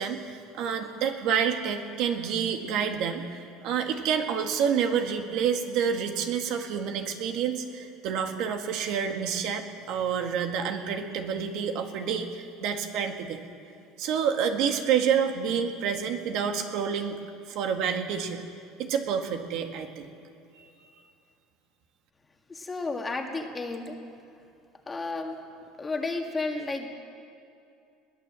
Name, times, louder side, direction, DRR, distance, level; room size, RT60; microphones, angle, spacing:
voice 1, 0.0-13.4 14.0-17.2 17.5-18.5 18.8-20.1 20.5-20.7, right 7 dB, 55° right, 5 dB, 1.7 m, -28 dB
voice 2, 22.5-24.0 24.9-25.4 25.8-26.9, left 3 dB, 15° left, 2 dB, 1.9 m, -32 dB
21.5 x 16.5 x 7.6 m, 2.6 s
cardioid pair, 145°, 0 cm